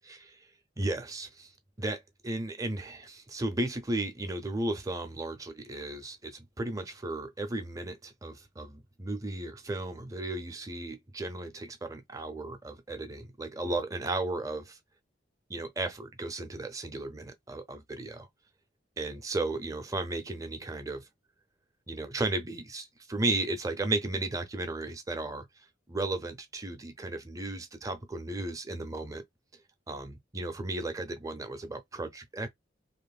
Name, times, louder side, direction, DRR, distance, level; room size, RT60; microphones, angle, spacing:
voice 1, 0.8-1.5 1.8-14.8 15.5-18.3 19.0-21.0 21.9-25.5 25.9-29.2 29.9-32.5, right 2 dB, 20° right, 0.6 m, -35 dB
3.0 x 2.6 x 2.3 m
head